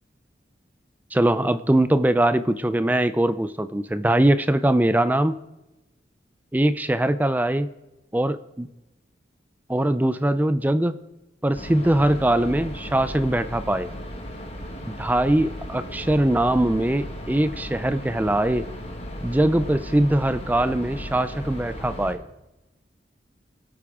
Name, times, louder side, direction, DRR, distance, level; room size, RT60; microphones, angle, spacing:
voice 1, 1.1-5.3 6.5-7.7 8.1-8.7 9.7-11.0 11.4-13.9 14.8-18.7 19.2-22.2, right 1 dB, 10° right, 13 dB, 0.4 m, -22 dB
sound 1, 11.5-22.1, equal, 35° left, 1.7 m, -36 dB
23.5 x 8.4 x 3.6 m, 0.99 s
head